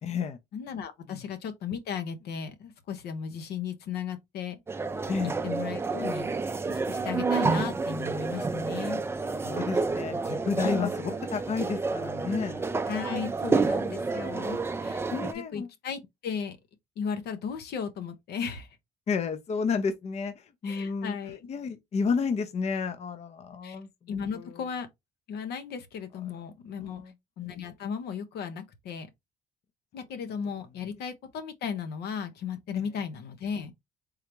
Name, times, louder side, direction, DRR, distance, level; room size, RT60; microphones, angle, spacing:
voice 1, 0.0-0.4 1.1-1.2 5.1-5.3 9.4-12.6 14.8-15.7 19.1-21.2 21.5-24.6 26.8-27.1, left 5 dB, 40° left, 0.6 m, -31 dB
voice 2, 0.5-4.6 5.4-6.3 6.6-9.0 10.6-10.9 12.9-15.0 15.3-16.6 17.0-18.7 20.6-21.4 23.6-23.8 24.1-24.9 25.3-27.0 27.4-29.1 29.9-33.7, left 7 dB, 75° left, 0.9 m, -35 dB
sound 1, 4.7-15.3, right 4 dB, 15° right, 0.4 m, -29 dB
3.7 x 3.3 x 3.0 m
cardioid pair, 110°, 17 cm